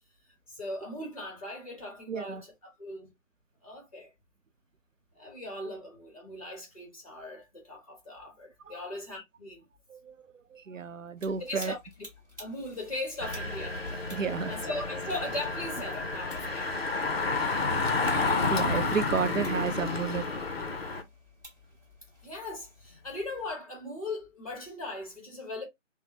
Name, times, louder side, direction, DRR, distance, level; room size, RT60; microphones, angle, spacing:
voice 1, 0.5-3.1 3.6-4.1 5.1-9.6 11.5-12.0 12.4-14.1 14.5-16.8 17.3-17.6 22.2-25.6, left 2 dB, 30° left, 1.0 m, -39 dB
voice 2, 2.1-2.4 8.7-8.8 9.9-10.1 10.5-11.7 14.1-14.6 18.5-20.3, right 6 dB, 80° right, 0.5 m, -31 dB
sound 1, 11.2-23.5, left 1 dB, 15° right, 1.4 m, -53 dB
Engine, 13.2-21.0, left 3 dB, 50° left, 0.6 m, -30 dB
3.3 x 2.1 x 2.7 m
figure-of-eight pair, 160°, 38 cm